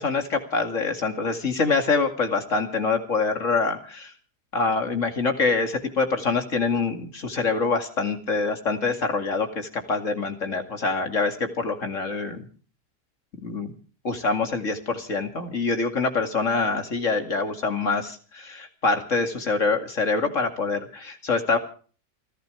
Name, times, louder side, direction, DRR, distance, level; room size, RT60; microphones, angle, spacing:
voice 1, 0.0-4.1 4.5-12.5 13.4-13.7 14.0-21.6, left 4 dB, 45° left, 6 dB, 2.6 m, -25 dB
29.5 x 11.5 x 3.3 m, 0.41 s
omnidirectional pair, 1.8 m